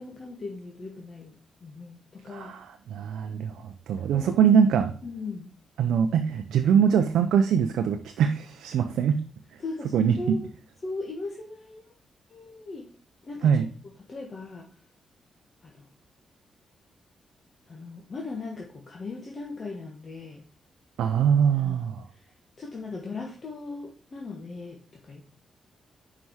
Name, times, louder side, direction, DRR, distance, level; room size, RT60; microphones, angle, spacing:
voice 1, 0.0-2.5 4.1-4.3 5.0-5.5 9.6-10.4 10.8-11.8 12.3-12.9 13.2-13.7 14.1-14.7 15.6-15.9 17.7-20.4 21.5-22.2 22.6-25.2, left 3 dB, 45° left, 1.4 m, -38 dB
voice 2, 2.3-2.7 2.9-4.9 5.8-9.2 9.9-10.4 13.4-13.7 21.0-22.0, right 7 dB, 90° right, 0.4 m, -23 dB
5.5 x 4.8 x 4.6 m
cardioid pair, 65°, 0 cm